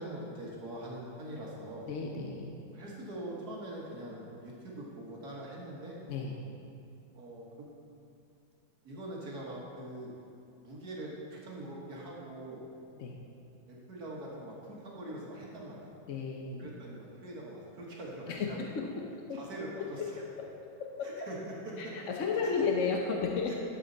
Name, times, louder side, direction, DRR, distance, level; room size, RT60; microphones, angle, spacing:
voice 1, 0.0-1.9 2.7-6.0 7.1-7.7 8.8-10.1 10.6-12.6 13.7-16.0 16.6-18.6 19.3-20.2 21.0-21.4 21.6-21.9 22.4-22.5 23.5-23.6, right 1 dB, 50° right, -4 dB, 2.0 m, -43 dB
voice 2, 1.9-2.6 6.1-6.5 13.0-13.2 16.1-16.7 18.3-18.8 19.3-19.4 19.8-20.1 20.4-20.5 20.8-21.1 21.8-23.5, left 5 dB, 60° left, 0 dB, 0.8 m, -33 dB
12.0 x 7.8 x 4.0 m, 2.6 s
omnidirectional pair, 2.1 m